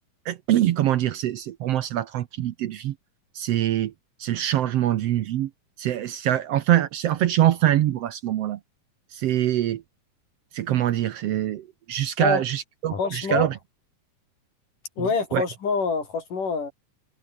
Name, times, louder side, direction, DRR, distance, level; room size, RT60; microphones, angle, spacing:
voice 1, 0.2-2.9 3.3-3.9 4.2-5.5 5.8-8.6 9.1-9.8 10.5-13.6 15.0-15.4, right 12 dB, 70° right, 1.5 m, -24 dB
voice 2, 12.9-13.5 15.0-16.7, left 5 dB, 80° left, 7.3 m, -26 dB
omnidirectional pair, 3.7 m